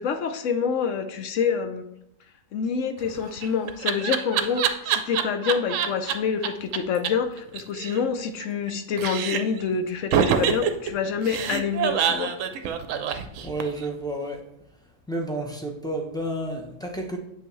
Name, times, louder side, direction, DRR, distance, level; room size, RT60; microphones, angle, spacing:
voice 1, 0.0-1.9 2.5-12.3, left 6 dB, 65° left, 7 dB, 0.9 m, -27 dB
Laughter, 3.0-6.1 6.4-6.5 6.7-6.8 7.0-7.1 7.4-8.7 9.0-9.6 10.1-13.9, right 8 dB, 65° right, 0.9 m, -25 dB
voice 2, 13.4-14.4 15.1-17.2, right 1 dB, 5° left, 0 dB, 0.4 m, -30 dB
8.2 x 5.7 x 3.1 m, 0.82 s
omnidirectional pair, 1.6 m